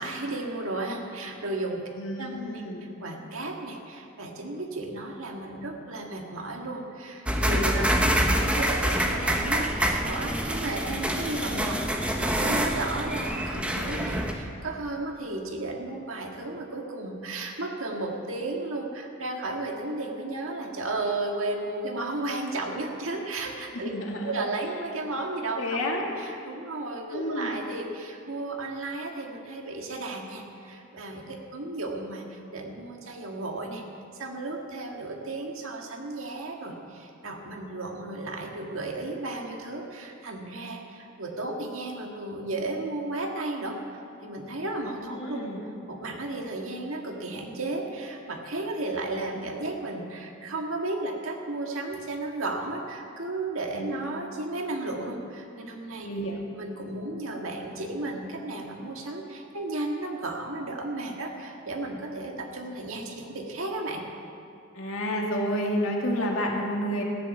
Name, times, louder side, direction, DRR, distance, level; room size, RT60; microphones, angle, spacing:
voice 1, 0.0-1.8 2.2-2.6 3.0-23.9 24.2-25.8 26.2-33.8 34.2-45.4 45.9-56.1 56.5-64.0, right 2 dB, 75° right, 2 dB, 1.8 m, -34 dB
voice 2, 2.0-2.9 23.8-24.3 25.6-26.1 27.1-27.6 44.9-45.6 53.7-54.0 56.0-56.4 64.7-67.0, equal, 70° left, 0 dB, 2.3 m, -30 dB
sound 1, 7.3-14.3, equal, 5° right, 0.9 m, -26 dB
14.5 x 10.5 x 7.2 m, 2.7 s
head